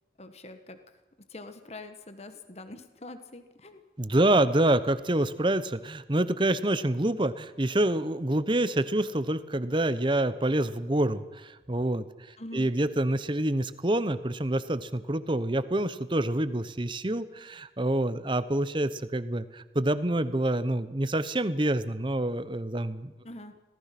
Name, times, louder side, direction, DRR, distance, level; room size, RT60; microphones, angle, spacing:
voice 1, 0.2-0.8 1.2-3.8 12.4-12.7 23.2-23.5, left 2 dB, 35° left, 9 dB, 1.5 m, -44 dB
voice 2, 4.0-23.1, right 1 dB, 30° right, 13 dB, 1.0 m, -27 dB
26.0 x 18.5 x 6.0 m, 1.1 s
head